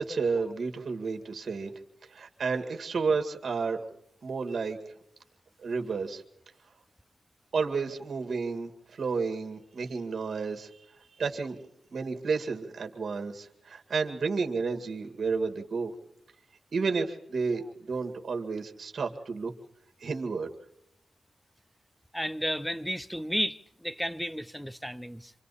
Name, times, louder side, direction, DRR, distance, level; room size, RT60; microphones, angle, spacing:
voice 1, 0.0-1.7 2.1-3.9 4.2-4.9 5.6-6.2 7.5-10.7 11.2-11.6 11.9-15.9 16.7-19.5 20.0-20.5, right 4 dB, 65° right, 2.0 m, -31 dB
voice 2, 22.1-25.3, equal, 5° left, 0.9 m, -33 dB
27.0 x 26.0 x 4.2 m
cardioid pair, 50°, 0 cm